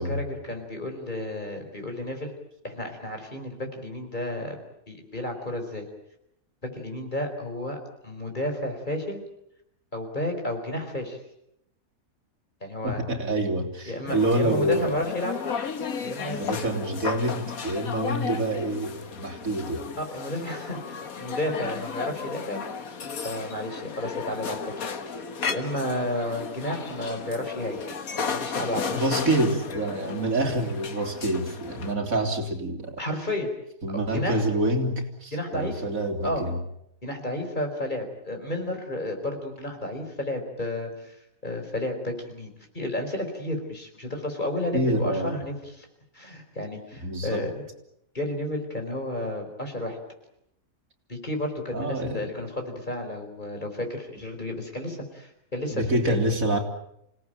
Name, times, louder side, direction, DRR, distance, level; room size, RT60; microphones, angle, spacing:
voice 1, 0.0-2.3 2.6-4.6 4.9-5.9 6.6-7.8 8.0-9.2 9.9-11.2 12.6-13.0 13.8-15.4 16.0-16.4 20.0-22.6 23.2-27.8 28.1-28.9 33.0-33.5 34.1-34.4 35.3-35.8 36.2-36.4 37.0-45.9 46.1-47.6 48.1-50.0 51.1-56.2, left 1 dB, 35° left, 4 dB, 4.7 m, -32 dB
voice 2, 12.8-15.0 16.3-19.9 28.9-33.0 33.8-36.6 44.7-45.4 47.0-47.5 51.7-52.3 55.7-56.6, right 1 dB, 80° right, 4 dB, 3.5 m, -27 dB
sound 1, 14.1-31.9, left 6 dB, 85° left, 1.9 m, -34 dB
28.0 x 18.0 x 9.0 m, 0.78 s
omnidirectional pair, 1.4 m